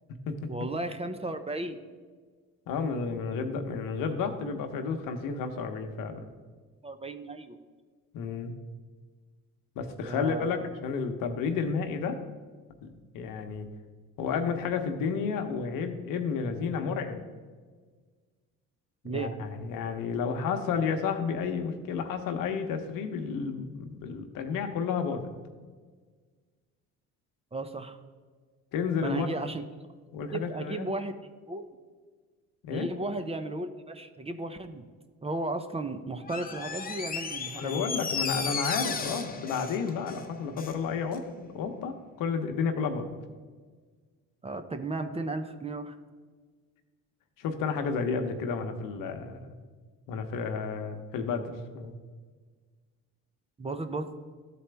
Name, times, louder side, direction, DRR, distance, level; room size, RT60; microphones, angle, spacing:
voice 1, 0.5-1.8 6.8-7.6 10.0-10.6 19.0-19.3 27.5-28.0 29.0-29.6 30.3-31.2 31.5-31.7 32.7-34.8 35.2-37.8 44.4-45.9 53.6-54.1, right 2 dB, 20° right, 8 dB, 0.6 m, -34 dB
voice 2, 2.7-6.2 8.1-8.5 9.8-12.2 13.1-13.7 14.2-17.2 19.0-25.3 28.7-29.3 30.1-30.9 32.6-32.9 37.6-43.2 47.4-49.5 50.1-51.9, left 5 dB, 70° left, 6 dB, 0.9 m, -31 dB
Door, 36.2-40.8 41.1-41.2, left 5 dB, 25° left, 0.8 m, -35 dB
12.5 x 4.2 x 3.4 m, 1.5 s
supercardioid pair, 75°, 34 cm